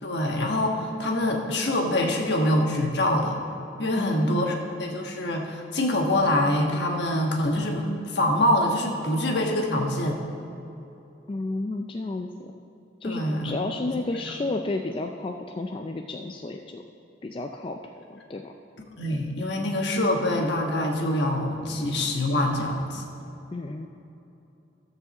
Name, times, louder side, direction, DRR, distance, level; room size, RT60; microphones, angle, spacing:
voice 1, 0.0-3.4 3.8-10.2 13.0-13.6 13.9-14.0 19.0-23.0, left 1 dB, 60° left, 1 dB, 1.3 m, -25 dB
voice 2, 4.0-4.4 11.3-12.5 13.0-16.8 17.2-18.5 23.5-23.9, left 2 dB, 30° left, 3 dB, 0.3 m, -32 dB
13.5 x 4.8 x 7.0 m, 2.9 s
head